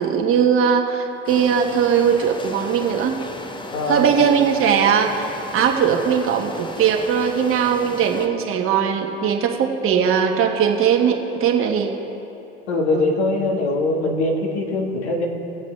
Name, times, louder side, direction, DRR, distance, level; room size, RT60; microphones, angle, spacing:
voice 1, 0.0-3.2 3.9-11.9 12.9-13.0, right 7 dB, 40° right, 2 dB, 1.4 m, -19 dB
sound 1, 1.3-8.3, left 2 dB, 15° left, 0.8 m, -35 dB
voice 2, 3.7-4.3 12.7-15.3, left 2 dB, 80° left, 1 dB, 1.7 m, -22 dB
20.0 x 7.4 x 3.3 m, 3.0 s
hypercardioid pair, 95°, 32 cm